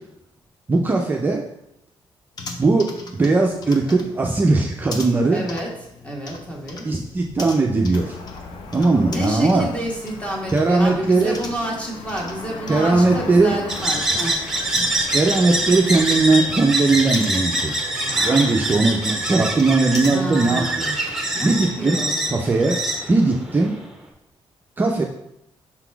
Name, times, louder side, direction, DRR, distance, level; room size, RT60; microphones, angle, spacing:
voice 1, 0.7-1.4 2.6-5.4 6.8-8.2 8.7-9.7 10.5-11.4 12.7-13.5 15.1-20.9 21.4-22.0 22.3-22.8 23.1-23.7 24.8-25.0, right 3 dB, 20° right, 0 dB, 0.5 m, -19 dB
sound 1, 2.3-21.3, left 3 dB, 45° left, 0.8 m, -40 dB
voice 2, 5.3-5.8 6.0-6.9 8.7-14.4 17.9-18.6 20.1-21.0 21.3-22.2, equal, 15° left, -1 dB, 1.3 m, -29 dB
Cricket / Motor vehicle (road), 7.9-16.7, left 3 dB, 85° left, 0.7 m, -37 dB
sound 2, 13.7-23.9, right 1 dB, 5° right, 1.0 m, -25 dB
6.0 x 4.0 x 4.5 m, 0.80 s
cardioid pair, 155°, 9 cm